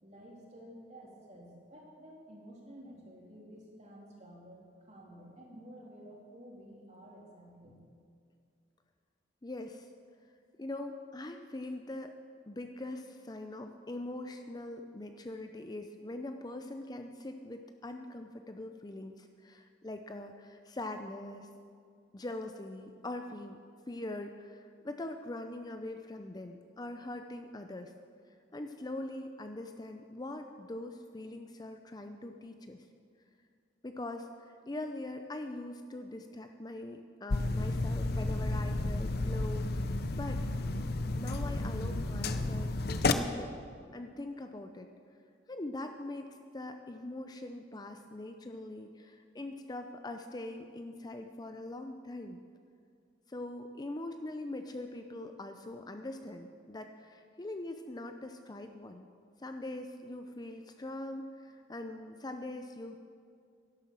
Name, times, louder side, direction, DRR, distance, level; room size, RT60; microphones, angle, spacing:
voice 1, 0.0-7.8, equal, 40° right, -3 dB, 3.1 m, -52 dB
voice 2, 9.4-9.9 10.6-12.2 12.5-21.5 22.1-23.6 23.9-27.9 28.5-32.9 33.8-34.3 34.7-40.5 41.1-43.5 43.9-44.9 45.5-52.4 53.3-59.1 59.4-63.0, left 2 dB, 20° left, 6 dB, 0.5 m, -42 dB
sound 1, 37.3-43.1, left 2 dB, 55° left, 0.7 m, -32 dB
11.5 x 11.5 x 7.3 m, 2.2 s
head